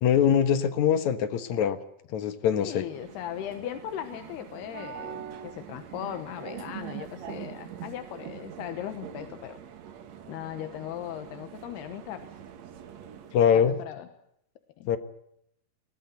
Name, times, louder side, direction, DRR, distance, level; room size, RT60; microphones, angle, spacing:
voice 1, 0.0-1.8 2.1-2.8 13.3-13.8 14.9-15.0, left 8 dB, 60° left, 10 dB, 2.1 m, -23 dB
voice 2, 2.6-9.6 10.3-12.3 13.5-14.1 14.8-15.0, left 11 dB, 80° left, 8 dB, 3.2 m, -38 dB
sound 1, 2.6-13.5, right 9 dB, 55° right, 2.2 m, -43 dB
21.0 x 19.5 x 9.4 m, 0.74 s
omnidirectional pair, 4.7 m